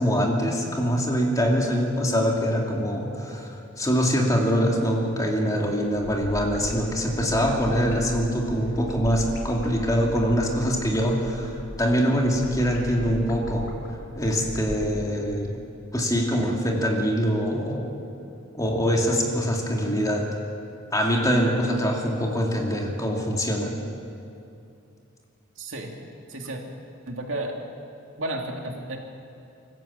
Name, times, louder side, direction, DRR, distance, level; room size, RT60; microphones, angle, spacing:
voice 1, 0.0-3.5 3.8-13.7 14.2-15.6 15.9-17.9 18.5-20.3 20.9-23.8, equal, 15° left, 0 dB, 2.6 m, -24 dB
sound 1, 6.0-14.9, left 1 dB, 85° left, 3.2 m, -37 dB
voice 2, 25.6-25.9 26.3-26.6 27.1-27.6 28.2-29.0, right 1 dB, 75° right, 1 dB, 2.7 m, -32 dB
25.0 x 14.5 x 8.6 m, 2.6 s
head